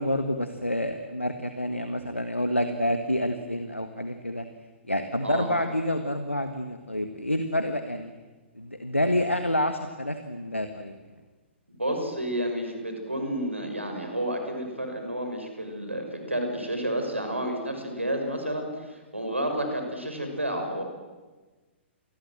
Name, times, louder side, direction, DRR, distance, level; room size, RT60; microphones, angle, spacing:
voice 1, 0.0-4.4 4.9-8.1 8.5-10.9, left 1 dB, 90° left, 8 dB, 1.6 m, -28 dB
voice 2, 11.8-20.8, right 1 dB, 85° right, 4 dB, 6.1 m, -30 dB
28.5 x 21.0 x 7.6 m, 1.3 s
figure-of-eight pair, 115°, 6 cm